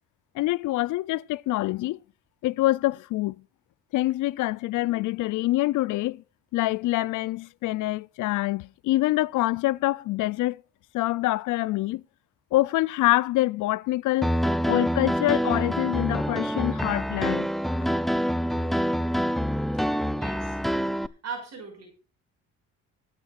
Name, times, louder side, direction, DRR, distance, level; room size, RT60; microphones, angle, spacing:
voice 1, 0.3-2.0 2.4-3.4 3.9-6.2 6.5-10.6 10.9-12.0 12.5-14.3 14.7-17.5, left 17 dB, 80° left, 0.5 m, -25 dB
Piano, 14.2-21.1, equal, ahead, 0.5 m, -26 dB
voice 2, 20.1-20.6 20.9-21.9, right 5 dB, 60° right, 5.7 m, -39 dB
25.5 x 9.0 x 2.5 m
cardioid pair, 90°, 30 cm